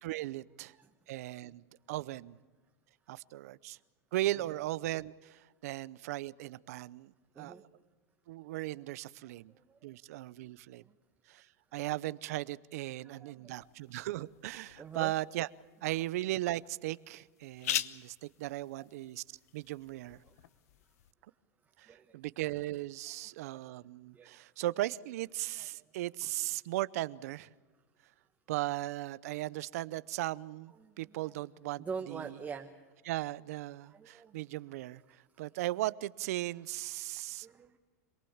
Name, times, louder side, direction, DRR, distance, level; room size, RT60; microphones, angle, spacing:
voice 1, 0.0-0.7 1.1-2.4 3.1-3.8 4.1-7.1 7.4-7.5 8.3-9.5 9.8-10.8 11.3-11.4 11.7-15.5 15.8-19.2 19.5-20.2 21.8-27.5 28.5-32.2 33.1-35.0 35.4-37.5, right 16 dB, 70° right, 0.7 m, -37 dB
voice 2, 7.3-7.7 9.2-10.0 10.8-10.9 13.0-13.7 14.8-15.1 18.6-18.9 20.2-20.4 21.6-22.2 23.1-23.8 24.1-24.4 25.6-25.9 30.8-31.3 31.8-32.7 33.8-34.4 35.3-35.4 37.3-37.8, right 6 dB, 15° right, 1.1 m, -46 dB
sound 1, 13.6-21.1, left 13 dB, 75° left, 0.9 m, -43 dB
26.5 x 19.0 x 7.2 m
supercardioid pair, 135°, 8 cm